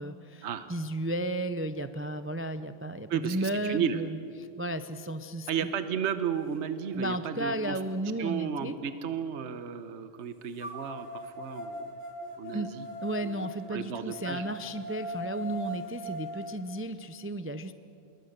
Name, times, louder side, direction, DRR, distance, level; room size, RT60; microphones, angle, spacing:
voice 1, 0.0-5.7 6.9-8.7 12.5-12.7 13.0-17.7, right 1 dB, 15° right, 11 dB, 0.4 m, -34 dB
voice 2, 3.1-4.0 5.5-7.8 8.2-11.9 12.4-12.8 13.2-14.5, right 8 dB, 65° right, 10 dB, 1.3 m, -33 dB
sound 1, 6.8-6.9 7.5-9.4 10.6-16.6, equal, 10° left, 4.1 m, -41 dB
26.5 x 22.0 x 6.7 m, 2.6 s
omnidirectional pair, 1.3 m